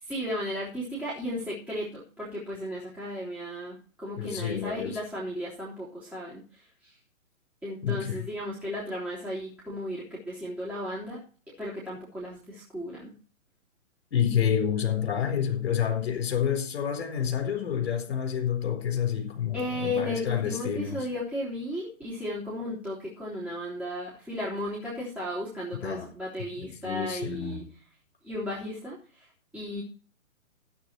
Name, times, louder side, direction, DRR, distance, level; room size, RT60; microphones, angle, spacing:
voice 1, 0.0-6.9 7.6-11.2 11.6-13.1 19.5-27.7 28.2-29.3 29.5-29.8, left 1 dB, 5° right, 3.4 m, -35 dB
voice 2, 4.2-5.0 7.8-8.2 14.1-21.1 25.8-26.1 26.6-27.6, left 8 dB, 45° left, 4.1 m, -29 dB
15.0 x 8.3 x 4.5 m
figure-of-eight pair, 130°, 42 cm